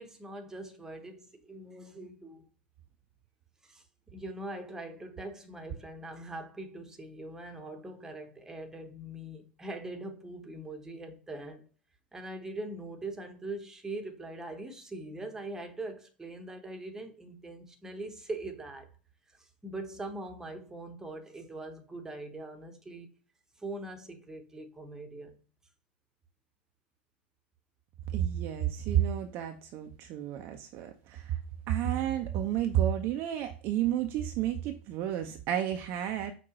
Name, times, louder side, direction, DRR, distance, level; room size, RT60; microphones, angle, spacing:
voice 1, 0.0-2.5 3.6-3.8 4.1-11.7 12.1-18.9 19.3-23.2 23.6-25.3, right 2 dB, 10° right, 0.8 m, -42 dB
voice 2, 28.1-31.4 31.7-36.3, right 11 dB, 40° right, 0.5 m, -31 dB
5.4 x 2.2 x 2.9 m
figure-of-eight pair, 85°, 6 cm